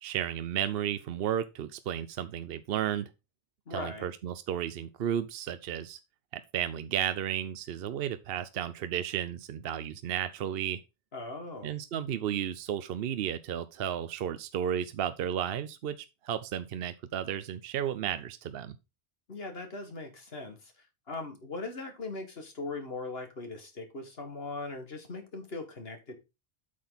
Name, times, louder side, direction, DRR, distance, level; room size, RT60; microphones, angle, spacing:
voice 1, 0.0-3.1 3.7-6.0 6.3-10.8 11.6-18.8, right 10 dB, 70° right, 0.8 m, -33 dB
voice 2, 3.7-4.1 11.1-11.7 19.3-26.1, left 3 dB, 65° left, 2.1 m, -40 dB
8.4 x 6.3 x 4.0 m
omnidirectional pair, 1.1 m